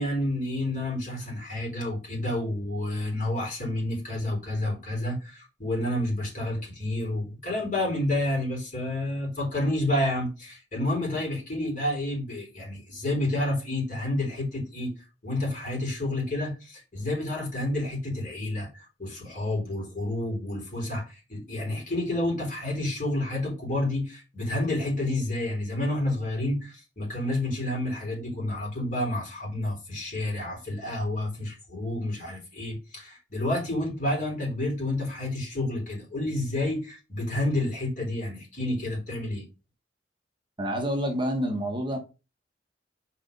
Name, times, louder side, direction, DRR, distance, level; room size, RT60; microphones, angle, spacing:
voice 1, 0.0-14.9 15.2-39.5, left 1 dB, 45° left, 3.8 m, -29 dB
voice 2, 40.6-42.0, equal, 25° right, 1.1 m, -28 dB
5.0 x 4.9 x 5.1 m
head